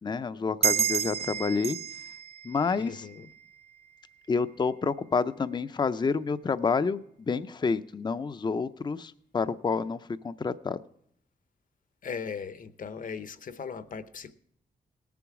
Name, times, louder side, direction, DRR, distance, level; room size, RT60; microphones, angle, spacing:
voice 1, 0.0-1.8 2.4-3.1 4.3-10.0 10.2-10.8, left 5 dB, 25° left, 13 dB, 0.5 m, -29 dB
sound 1, 0.6-3.7, right 8 dB, 40° right, 0.4 m, -31 dB
voice 2, 2.8-3.3 12.0-14.3, left 6 dB, 55° left, 12 dB, 0.8 m, -38 dB
18.5 x 7.0 x 4.8 m, 0.71 s
cardioid pair, 80°, 16 cm